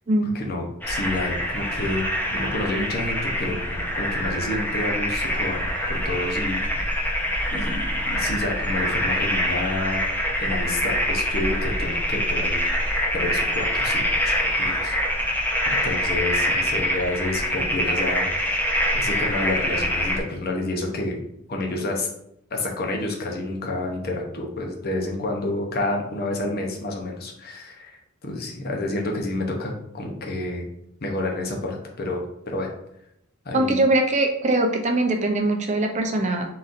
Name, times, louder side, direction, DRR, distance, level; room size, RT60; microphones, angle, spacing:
voice 1, 0.3-2.0 2.3-6.6 7.5-10.0 10.4-12.6 13.1-15.3 15.8-18.3 18.9-21.2 21.5-22.1 22.5-30.7 31.0-32.7 33.5-33.8, left 2 dB, 50° left, 1 dB, 0.7 m, -29 dB
sound 1, 0.8-20.2, equal, 10° left, 0.5 m, -25 dB
voice 2, 33.5-36.5, right 2 dB, 35° right, 3 dB, 0.6 m, -21 dB
4.1 x 3.8 x 2.5 m, 0.76 s
head